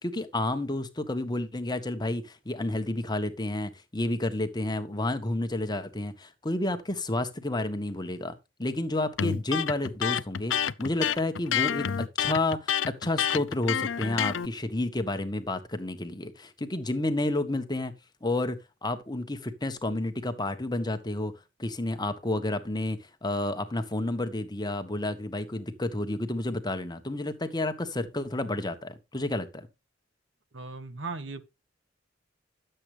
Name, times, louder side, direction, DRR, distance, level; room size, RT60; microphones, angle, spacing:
voice 1, 0.0-8.3 8.6-11.9 12.2-17.9 18.2-21.3 21.6-29.7, left 2 dB, 20° left, 1.4 m, -30 dB
Electric guitar, 9.2-14.5, left 8 dB, 80° left, 0.5 m, -28 dB
voice 2, 30.5-31.4, right 3 dB, 70° right, 1.3 m, -37 dB
11.5 x 7.9 x 3.3 m
head